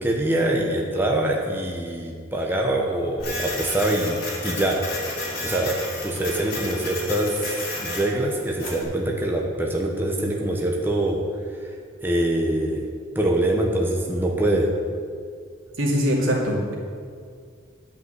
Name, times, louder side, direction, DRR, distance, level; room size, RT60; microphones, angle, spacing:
voice 1, 0.0-4.2 4.4-4.8 5.4-5.8 6.0-7.5 7.7-11.2 11.6-11.7 12.0-12.8 13.1-14.7, right 1 dB, 10° right, -1 dB, 0.9 m, -24 dB
Printer, 3.2-8.8, left 2 dB, 50° left, 2.9 m, -32 dB
voice 2, 15.8-16.7, equal, 80° right, -2 dB, 2.5 m, -22 dB
10.5 x 5.6 x 8.0 m, 2.1 s
head